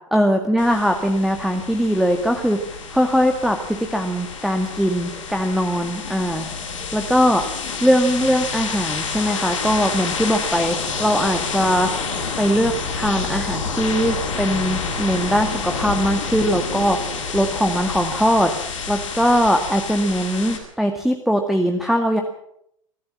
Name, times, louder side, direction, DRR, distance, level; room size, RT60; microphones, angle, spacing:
voice 1, 0.1-2.6 2.9-6.5 6.9-7.4 7.8-11.9 12.4-17.0 17.3-18.5 18.9-22.2, equal, ahead, 3 dB, 2.0 m, -20 dB
sound 1, 0.6-20.6, left 5 dB, 70° left, 6.8 m, -28 dB
24.0 x 15.0 x 7.4 m, 0.72 s
figure-of-eight pair, 85°, 17 cm